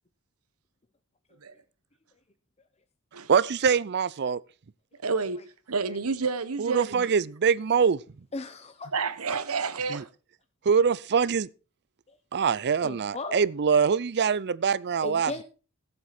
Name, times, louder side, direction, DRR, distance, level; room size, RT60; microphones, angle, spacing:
voice 1, 3.3-4.4 6.6-8.0 9.9-10.0 10.7-11.5 12.3-15.3, right 6 dB, 50° right, 0.5 m, -24 dB
voice 2, 5.0-5.4 5.7-7.1 8.9-10.1, right 4 dB, 75° right, 1.1 m, -29 dB
voice 3, 8.3-8.9 12.1-12.2 12.8-13.4 15.0-15.4, left 3 dB, 30° left, 0.8 m, -37 dB
16.5 x 7.7 x 4.3 m
head